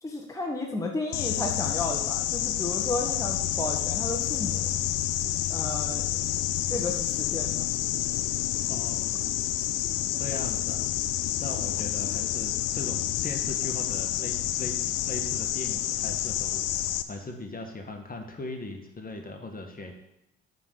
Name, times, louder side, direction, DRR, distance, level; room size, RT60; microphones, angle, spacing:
voice 1, 0.0-4.7 5.5-6.0 6.3-7.7, left 2 dB, 10° left, 0 dB, 1.4 m, -33 dB
sound 1, 1.1-17.0, left 13 dB, 60° left, 0.6 m, -29 dB
voice 2, 8.7-9.3 10.1-10.9 11.4-19.9, left 2 dB, 25° left, 3 dB, 1.6 m, -39 dB
9.0 x 4.0 x 6.7 m, 0.84 s
hypercardioid pair, 50°, 35 cm